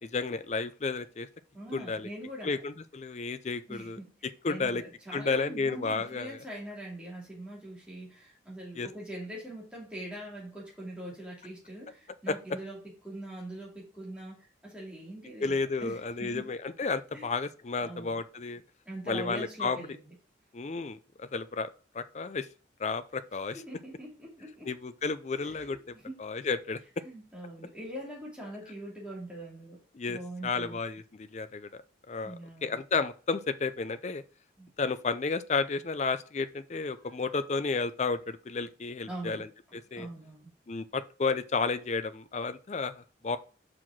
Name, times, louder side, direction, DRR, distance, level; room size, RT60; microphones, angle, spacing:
voice 1, 0.0-1.3 1.7-2.1 2.4-4.0 4.4-4.8 5.1-6.4 8.8-8.9 12.3-12.4 15.4-18.6 19.1-19.8 20.5-21.7 21.9-22.5 22.8-23.6 24.7-26.8 29.9-32.3 32.6-34.2 34.8-40.1 40.7-43.4, left 4 dB, 35° left, 0.4 m, -32 dB
voice 2, 1.5-2.6 3.7-4.1 4.4-16.5 17.1-17.3 17.8-18.2 18.9-20.1 23.5-24.7 25.4-26.2 27.0-29.8 30.1-30.8 32.2-32.8 34.6-34.7 36.9-37.0 39.0-39.4 39.9-40.5, right 1 dB, 5° right, 2.7 m, -43 dB
5.8 x 4.9 x 5.9 m
head